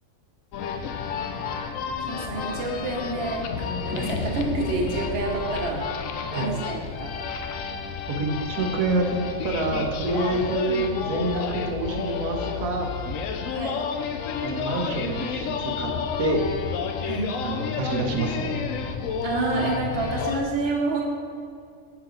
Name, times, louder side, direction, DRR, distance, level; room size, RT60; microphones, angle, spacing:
sound 1, 0.5-20.4, left 6 dB, 75° left, 0.9 m, -31 dB
voice 1, 2.0-5.8 6.3-7.2 13.5-13.8 17.0-17.3 19.2-21.0, right 3 dB, 50° right, -1 dB, 1.2 m, -28 dB
voice 2, 8.1-12.9 14.4-15.9 16.2-16.4 17.4-18.6, right 2 dB, 85° right, 2 dB, 1.4 m, -27 dB
7.7 x 5.9 x 3.8 m, 2.3 s
omnidirectional pair, 1.4 m